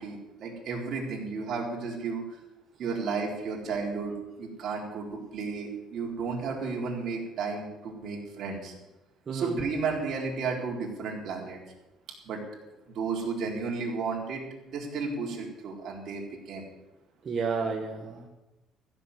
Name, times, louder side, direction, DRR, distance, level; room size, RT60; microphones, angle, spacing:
voice 1, 0.0-2.4 2.8-8.7 9.3-11.6 12.2-12.4 12.9-16.7, right 4 dB, 50° right, -2 dB, 4.1 m, -33 dB
voice 2, 17.2-18.3, right 5 dB, 30° right, 0 dB, 1.5 m, -31 dB
15.0 x 7.3 x 9.7 m, 1.0 s
cardioid pair, 160°, 0 cm